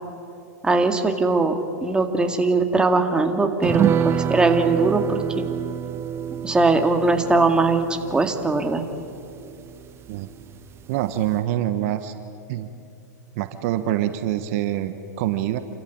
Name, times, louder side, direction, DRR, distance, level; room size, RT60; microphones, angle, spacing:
voice 1, 0.6-5.2 6.4-8.8, right 3 dB, 10° right, 5 dB, 2.1 m, -20 dB
sound 1, 3.6-10.4 10.7-10.8 11.2-11.3, right 9 dB, 25° right, 0.7 m, -27 dB
voice 2, 10.9-12.1 12.5-12.7 13.3-15.6, right 12 dB, 55° right, 10 dB, 1.3 m, -25 dB
28.5 x 14.5 x 9.4 m, 2.7 s
hypercardioid pair, 115°, 10 cm